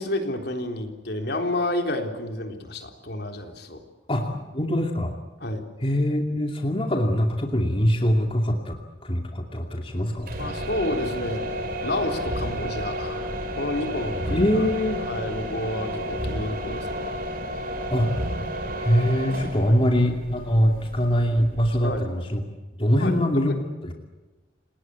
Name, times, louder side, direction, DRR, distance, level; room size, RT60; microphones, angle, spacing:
voice 1, 0.0-3.8 5.4-5.6 10.4-11.4 11.8-14.7 15.0-17.1 19.7-19.8 21.8-22.0 23.0-23.6, left 1 dB, 60° left, 5 dB, 3.9 m, -30 dB
voice 2, 4.1-5.1 5.8-8.7 9.0-10.3 14.3-15.0 17.9-18.2 18.8-22.4 22.8-23.9, equal, 30° left, 3 dB, 2.6 m, -23 dB
sound 1, 10.2-22.0, equal, 50° right, 4.5 m, -31 dB
29.0 x 19.5 x 8.4 m, 1.2 s
head